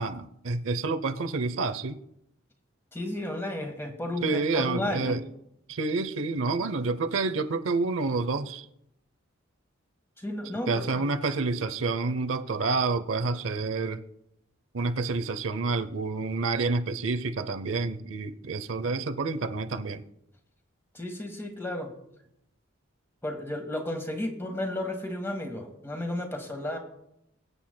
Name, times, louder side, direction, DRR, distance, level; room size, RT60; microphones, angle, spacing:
voice 1, 0.0-2.0 4.2-5.2 5.7-8.7 10.7-14.0 14.7-20.0, right 3 dB, 80° right, 0.7 m, -28 dB
voice 2, 2.9-5.2 10.2-11.0 20.9-21.9 23.2-26.8, left 1 dB, 10° left, 1.5 m, -33 dB
24.0 x 8.0 x 2.2 m
head